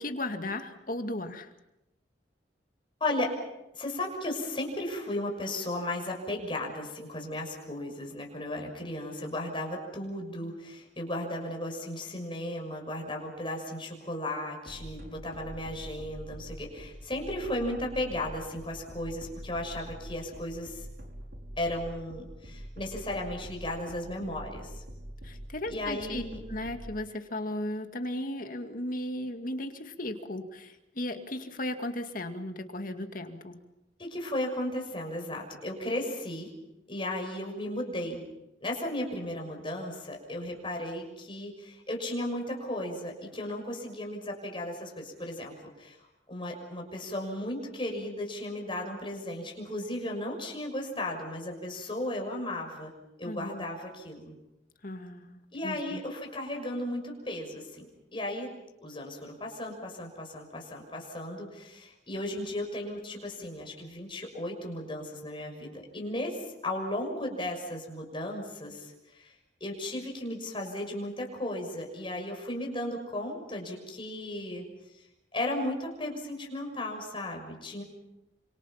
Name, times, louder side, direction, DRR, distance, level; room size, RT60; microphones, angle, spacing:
voice 1, 0.0-1.5 25.2-26.2 26.5-33.6 53.3-53.6 54.8-55.4 55.6-56.0, left 1 dB, 50° left, 6 dB, 2.2 m, -36 dB
voice 2, 3.0-3.3 3.7-20.9 21.6-24.8 25.7-26.4 34.0-36.5 36.9-38.2 38.6-46.0 46.3-52.9 53.2-54.3 55.5-58.5 58.8-69.3 69.6-74.7 75.0-75.1 75.3-77.8, left 1 dB, 30° left, 1 dB, 6.3 m, -35 dB
sound 1, 14.7-26.9, equal, 60° right, 5.4 m, -44 dB
28.5 x 26.0 x 5.9 m, 0.90 s
head